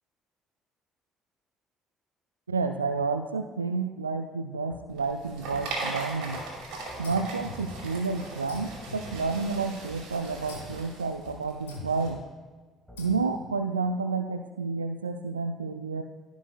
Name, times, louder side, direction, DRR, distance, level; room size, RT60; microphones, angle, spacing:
voice 1, 2.5-6.4 7.0-12.2 13.0-16.0, right 4 dB, 85° right, 7 dB, 0.3 m, -30 dB
sound 1, 4.7-4.8 5.5-5.7 6.3-6.5 6.9-7.0 7.7-7.8 8.5-8.6 9.1-9.2 9.9-10.0 10.7-10.8 11.2-11.4 12.1-12.2 12.9-13.0, equal, ahead, 1.7 m, -48 dB
sound 2, 4.9-12.1, right 2 dB, 65° right, 2.2 m, -39 dB
sound 3, 7.0-8.1 8.5-9.8 10.5-10.9 11.7-12.2 13.0-13.6, left 4 dB, 80° left, 1.4 m, -44 dB
15.0 x 5.2 x 2.3 m, 1.4 s
figure-of-eight pair, 50°, 0 cm